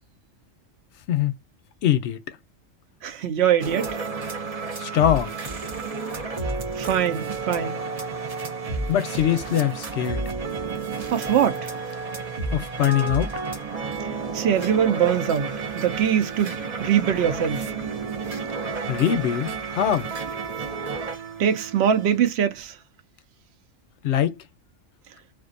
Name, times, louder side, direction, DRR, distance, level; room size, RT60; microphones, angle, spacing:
voice 1, 1.8-2.2 4.8-5.3 8.9-10.2 12.5-13.3 18.9-20.1 24.0-24.4, left 10 dB, 65° left, 0.8 m, -22 dB
voice 2, 3.0-4.0 6.8-7.8 11.1-11.7 14.2-17.7 21.4-22.7, right 9 dB, 60° right, 0.9 m, -23 dB
sound 1, 3.6-22.2, right 4 dB, 40° right, 0.5 m, -31 dB
2.5 x 2.2 x 2.5 m
omnidirectional pair, 1.3 m